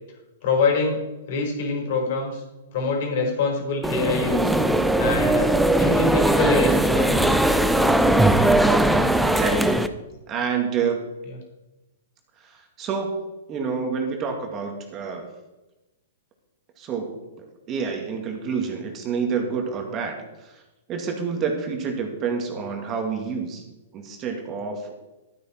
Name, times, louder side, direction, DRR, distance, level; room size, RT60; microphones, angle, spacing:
voice 1, 0.4-1.0 1.3-2.4 2.7-4.5 5.0-7.2, left 4 dB, 60° left, 1 dB, 4.7 m, -25 dB
sound 1, 3.8-9.9, right 1 dB, ahead, 0.7 m, -19 dB
voice 2, 9.2-9.8 10.3-11.0 12.4-13.2 13.5-15.3 16.8-20.2 20.4-20.6 20.9-23.6 23.9-24.9, right 5 dB, 30° right, 3 dB, 2.1 m, -28 dB
12.5 x 8.8 x 4.5 m, 1.0 s
hypercardioid pair, 125°, 0 cm